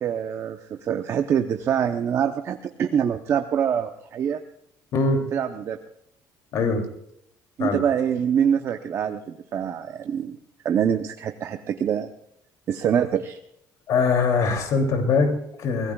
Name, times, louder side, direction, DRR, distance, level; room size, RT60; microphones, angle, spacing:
voice 1, 0.0-4.4 5.3-5.8 7.6-10.4 10.6-12.1 12.7-13.4, right 8 dB, 35° right, 6 dB, 0.7 m, -25 dB
voice 2, 4.9-5.3 6.5-6.9 7.6-7.8 13.9-15.9, left 4 dB, 50° left, 4 dB, 2.8 m, -22 dB
24.0 x 18.0 x 2.3 m, 0.75 s
cardioid pair, 180°, 8 cm